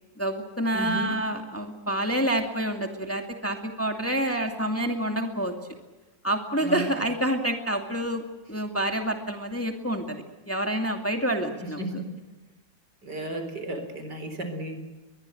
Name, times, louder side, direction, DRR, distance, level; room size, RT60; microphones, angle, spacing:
voice 1, 0.2-5.5 6.2-8.2 8.5-11.8, right 1 dB, 5° left, 4 dB, 2.3 m, -28 dB
voice 2, 0.7-1.1 6.6-6.8 11.6-12.1 13.0-14.8, right 1 dB, 65° right, 8 dB, 4.6 m, -34 dB
22.5 x 22.0 x 7.8 m, 1.2 s
omnidirectional pair, 2.0 m